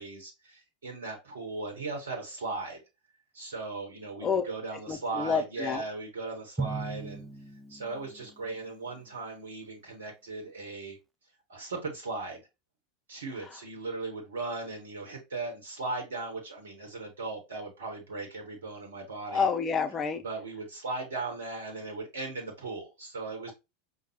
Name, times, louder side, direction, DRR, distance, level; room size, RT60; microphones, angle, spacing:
voice 1, 0.0-2.8 3.3-7.2 7.7-11.0 11.5-12.4 13.1-19.5 20.2-23.5, right 3 dB, 70° right, 1.0 m, -37 dB
voice 2, 4.9-5.8 13.5-13.6 19.3-20.2, left 6 dB, 25° left, 0.7 m, -28 dB
Drum, 6.6-8.8, right 4 dB, 5° right, 0.3 m, -38 dB
5.2 x 2.3 x 2.8 m
figure-of-eight pair, 85°, 0 cm